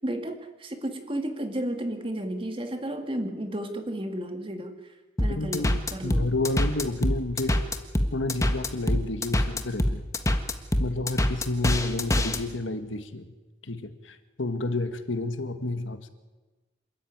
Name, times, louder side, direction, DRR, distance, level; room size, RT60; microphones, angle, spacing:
voice 1, 0.0-4.8 5.2-6.3, right 1 dB, 30° right, 5 dB, 2.3 m, -33 dB
sound 1, 5.2-12.4, left 1 dB, 15° left, 1.4 m, -25 dB
voice 2, 5.3-7.6 8.1-10.1 10.8-13.3 13.6-16.1, left 2 dB, 90° left, 8 dB, 1.8 m, -30 dB
27.0 x 14.0 x 9.6 m, 1.2 s
head